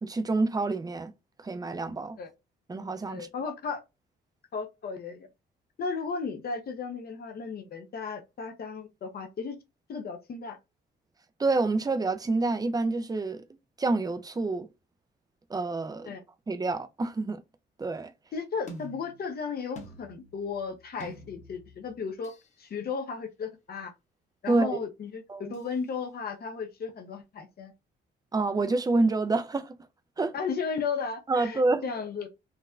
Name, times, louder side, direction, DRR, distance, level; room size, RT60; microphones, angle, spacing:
voice 1, 0.0-1.1 1.4-2.2 2.7-3.3 11.4-13.4 13.8-14.7 15.5-16.1 16.5-17.4 17.8-18.1 24.5-24.8 25.3-25.5 28.3-29.7 30.2-30.3 31.3-31.9, right 3 dB, 20° right, 0.5 m, -27 dB
voice 2, 3.1-3.8 4.5-5.3 5.8-9.6 9.9-10.6 16.0-16.2 18.3-22.3 22.6-23.9 24.4-25.2 25.5-27.7 30.3-32.3, left 5 dB, 50° left, 0.8 m, -35 dB
sound 1, 18.7-22.6 25.5-25.7, equal, 35° left, 1.1 m, -48 dB
4.0 x 2.1 x 2.5 m
cardioid pair, 90°, 20 cm